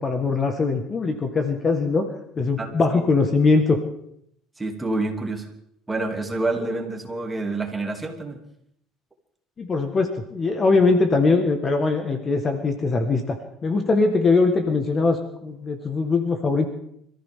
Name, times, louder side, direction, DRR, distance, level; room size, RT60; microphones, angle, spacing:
voice 1, 0.0-3.8 9.6-13.4 13.6-16.7, left 3 dB, 30° left, 6 dB, 1.6 m, -21 dB
voice 2, 4.6-5.5 5.9-8.4, right 2 dB, 15° right, 2 dB, 2.8 m, -27 dB
26.0 x 14.5 x 3.8 m, 0.72 s
cardioid pair, 130°, 0 cm